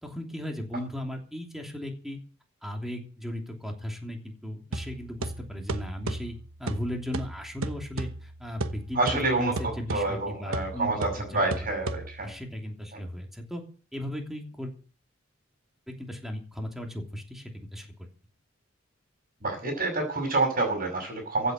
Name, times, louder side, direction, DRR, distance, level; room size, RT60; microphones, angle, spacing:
voice 1, 0.0-2.2 2.6-10.9 11.2-11.5 12.2-13.6 13.9-14.7 15.9-18.1, equal, ahead, 2 dB, 3.0 m, -36 dB
sound 1, 4.7-12.4, right 2 dB, 90° right, 1.1 m, -36 dB
voice 2, 8.9-12.3 12.9-13.0 19.4-21.5, right 2 dB, 45° right, 2 dB, 5.7 m, -28 dB
15.5 x 8.2 x 7.8 m, 0.39 s
head